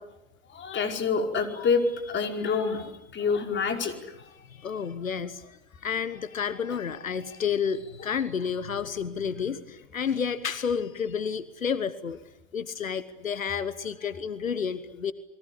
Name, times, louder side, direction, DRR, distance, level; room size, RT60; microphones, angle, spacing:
voice 1, 0.5-3.9, left 5 dB, 30° left, 4 dB, 4.9 m, -27 dB
voice 2, 4.2-5.4 5.8-12.2 12.5-15.1, left 7 dB, 85° left, 14 dB, 1.2 m, -30 dB
29.5 x 22.5 x 8.5 m, 0.86 s
figure-of-eight pair, 85°, 39 cm